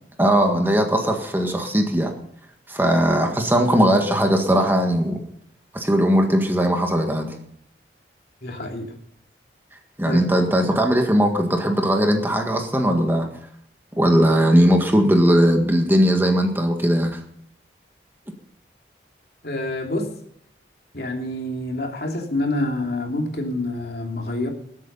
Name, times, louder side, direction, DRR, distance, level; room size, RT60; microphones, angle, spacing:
voice 1, 0.2-2.1 2.7-5.2 5.7-7.4 10.0-13.3 13.9-17.2, equal, 10° right, 3 dB, 1.7 m, -19 dB
voice 2, 8.4-8.9 10.1-10.2 19.4-20.1 20.9-24.5, left 1 dB, 60° left, 2 dB, 2.9 m, -27 dB
20.5 x 8.6 x 5.6 m, 0.68 s
head